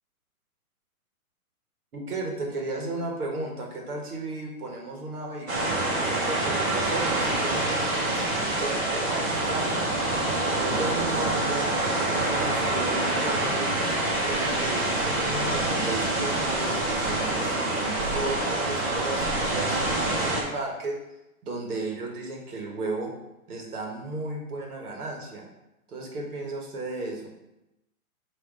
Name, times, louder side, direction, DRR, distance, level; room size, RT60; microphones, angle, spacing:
voice 1, 1.9-9.7 10.6-13.7 14.3-21.0 21.4-23.1 23.5-25.5 25.9-27.3, right 2 dB, 85° right, 1 dB, 1.7 m, -35 dB
sound 1, 5.5-20.4, right 2 dB, 45° right, 1.8 m, -26 dB
7.3 x 3.2 x 4.0 m, 0.94 s
hypercardioid pair, 175°, 44 cm